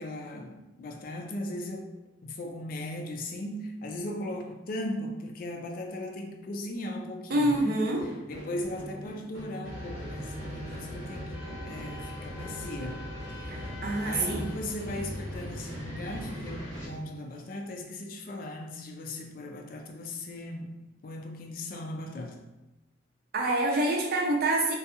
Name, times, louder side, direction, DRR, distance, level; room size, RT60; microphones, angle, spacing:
voice 1, 0.0-1.9 2.2-7.9 8.3-11.4 11.6-13.8 14.0-20.7 21.0-22.4, left 1 dB, 50° left, 2 dB, 0.3 m, -38 dB
voice 2, 7.3-8.1 13.8-14.4 23.3-24.7, right 1 dB, 50° right, -1 dB, 0.5 m, -26 dB
sound 1, 7.5-17.6, right 1 dB, 80° right, 0.8 m, -44 dB
sound 2, 9.6-16.9, left 1 dB, 90° left, 0.8 m, -40 dB
2.6 x 2.3 x 2.4 m, 1.0 s
head